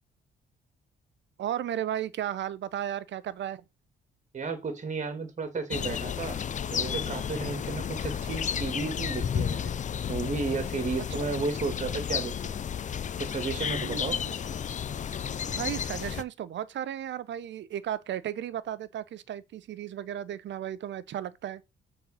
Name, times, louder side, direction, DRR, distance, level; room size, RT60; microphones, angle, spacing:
voice 1, 1.4-3.6 11.1-11.4 13.8-14.4 15.5-21.6, right 11 dB, 65° right, 0.8 m, -35 dB
voice 2, 4.3-6.4 6.7-9.7 10.1-12.5 13.2-14.2, right 4 dB, 35° right, 2.2 m, -33 dB
sound 1, 5.7-16.2, left 8 dB, 40° left, 0.5 m, -32 dB
7.4 x 4.1 x 5.6 m
cardioid pair, 90°, 20 cm